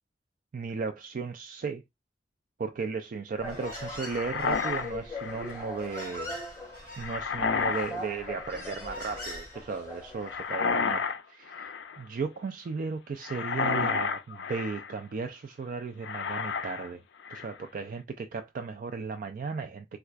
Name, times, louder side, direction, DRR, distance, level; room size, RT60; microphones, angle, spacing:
voice 1, 0.5-1.8 2.6-6.4 7.0-17.0 17.3-19.9, right 5 dB, 50° right, 0.3 m, -35 dB
Human voice, 3.3-10.4, left 1 dB, 15° left, 2.0 m, -40 dB
sound 1, 4.0-5.6 7.0-8.0 8.2-8.8 10.2-11.2 11.5-12.0 13.2-14.9 16.0-16.9 17.2-17.6, left 6 dB, 75° left, 0.4 m, -31 dB
4.4 x 2.3 x 2.3 m
head